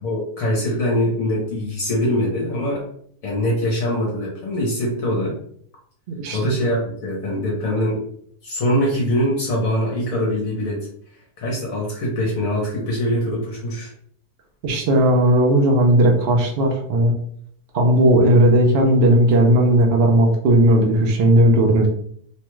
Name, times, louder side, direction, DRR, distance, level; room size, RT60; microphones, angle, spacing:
voice 1, 0.0-2.8 3.2-5.4 6.3-8.0 8.4-10.8 11.4-13.9, equal, 65° left, -3 dB, 1.1 m, -23 dB
voice 2, 6.1-6.4 14.6-17.1 17.7-21.9, right 1 dB, 60° right, 1 dB, 0.6 m, -16 dB
3.1 x 2.3 x 3.0 m, 0.64 s
omnidirectional pair, 1.7 m